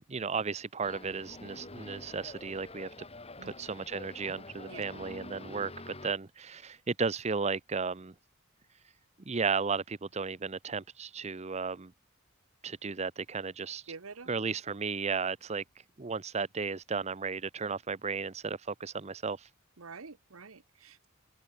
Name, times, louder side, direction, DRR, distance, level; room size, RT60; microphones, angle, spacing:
voice 1, 0.0-2.9 3.4-8.1 9.3-11.9 12.6-13.8 14.3-15.6 16.0-19.5, right 5 dB, 30° right, 0.7 m, -34 dB
sound 1, 0.8-6.1, left 2 dB, 30° left, 6.2 m, -47 dB
voice 2, 13.9-14.3 19.8-21.1, right 4 dB, 85° right, 1.1 m, -47 dB
open air
head